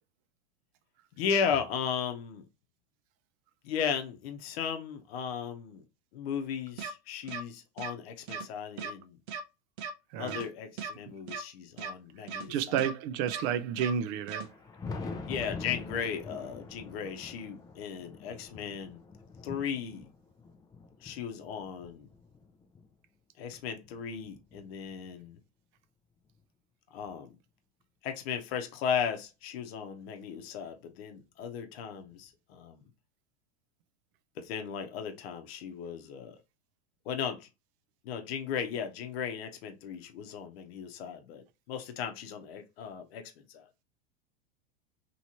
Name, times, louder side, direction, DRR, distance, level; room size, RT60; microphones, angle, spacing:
voice 1, 1.2-2.5 3.6-5.8 6.1-9.2 10.2-12.7 15.3-19.0 19.4-20.1 21.0-22.1 23.4-25.4 26.9-27.3 28.0-32.8 34.4-36.4 37.1-37.5 38.0-43.6, left 7 dB, 65° left, 0.8 m, -36 dB
sound 1, 6.8-6.9 7.3-7.4 7.8-7.9 8.3-8.4 8.8-8.9 9.3-9.4 9.8-9.9 10.3-10.4 10.8-10.9 11.3-11.4 11.8-11.9 12.3-12.4 12.8-12.9 13.3-13.4 13.8-13.9 14.3-14.4, right 6 dB, 80° right, 0.8 m, -37 dB
voice 2, 12.5-14.5, right 9 dB, 45° right, 0.4 m, -31 dB
Thunder, 14.3-22.9 23.5-25.2 26.4-26.5 27.0-27.1 29.0-29.1 30.4-30.5 32.1-32.2, left 4 dB, 10° left, 0.4 m, -45 dB
3.0 x 3.0 x 2.6 m
hypercardioid pair, 115°, 33 cm